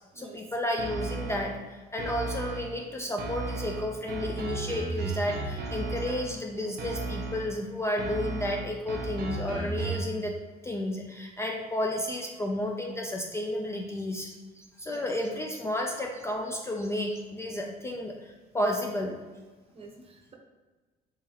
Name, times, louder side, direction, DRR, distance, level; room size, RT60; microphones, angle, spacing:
voice 1, 0.2-10.4 10.6-19.2, left 1 dB, 15° left, 1 dB, 0.3 m, -32 dB
sound 1, 0.8-1.6 2.0-2.8 3.2-6.4 6.8-7.6 8.0-10.2, right 3 dB, 65° right, 0.7 m, -35 dB
voice 2, 19.7-20.3, right 4 dB, 35° right, 1 dB, 0.7 m, -48 dB
3.7 x 3.1 x 2.9 m, 1.3 s
cardioid pair, 110°, 17 cm